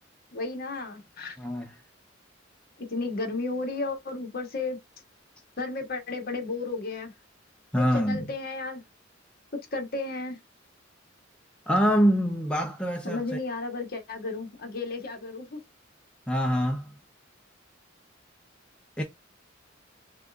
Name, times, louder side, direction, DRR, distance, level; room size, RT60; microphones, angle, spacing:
voice 1, 0.3-1.4 2.8-4.8 5.6-7.1 7.7-8.8 9.7-10.4 13.0-15.6, left 3 dB, 50° left, 1.3 m, -33 dB
voice 2, 1.4-1.7 7.7-8.3 11.7-13.2 16.3-16.9 19.0-19.1, equal, 5° left, 0.6 m, -25 dB
6.5 x 2.4 x 2.4 m
head